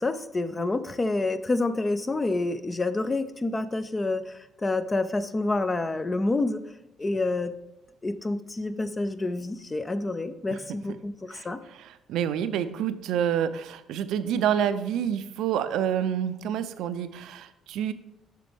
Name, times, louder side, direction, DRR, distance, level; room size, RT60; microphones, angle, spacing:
voice 1, 0.0-6.6 7.0-7.5 8.0-11.6, left 2 dB, 15° left, 12 dB, 0.4 m, -28 dB
voice 2, 11.3-17.9, right 9 dB, 75° right, 12 dB, 0.4 m, -28 dB
7.4 x 6.0 x 3.4 m, 0.88 s
cardioid pair, 160°, 0 cm